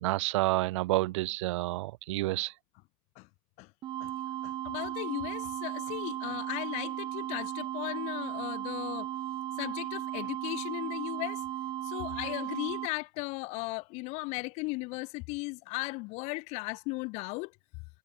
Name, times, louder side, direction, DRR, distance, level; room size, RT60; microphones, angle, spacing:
voice 1, 0.0-2.5, right 18 dB, 85° right, 0.8 m, -29 dB
sound 1, 3.8-12.9, right 13 dB, 30° right, 1.2 m, -36 dB
voice 2, 4.4-9.1 9.6-11.4 11.8-17.5, left 27 dB, 45° left, 1.5 m, -36 dB
supercardioid pair, 160°, 15 cm